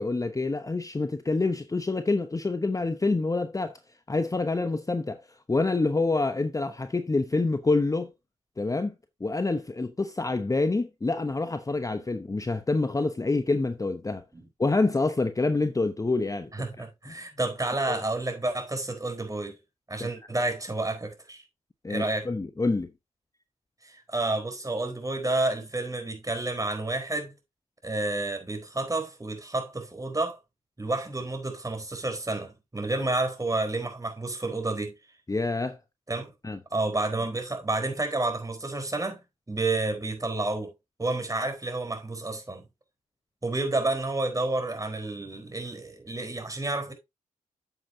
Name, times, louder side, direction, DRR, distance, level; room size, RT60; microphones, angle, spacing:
voice 1, 0.0-3.8 4.1-8.1 8.6-8.9 9.2-14.2 14.6-16.5 17.1-17.2 17.9-18.0 20.0-20.1 21.8-22.9 35.3-35.8 36.4-36.6, left 3 dB, 20° left, 0.9 m, -27 dB
voice 2, 16.5-19.6 19.9-21.4 21.9-22.3 23.8-27.3 27.8-30.4 30.8-34.9 36.1-36.3 36.7-39.2 39.5-40.7 41.0-42.6 43.4-46.9, right 2 dB, 20° right, 4.3 m, -30 dB
9.0 x 7.8 x 2.8 m
hypercardioid pair, 45°, 16 cm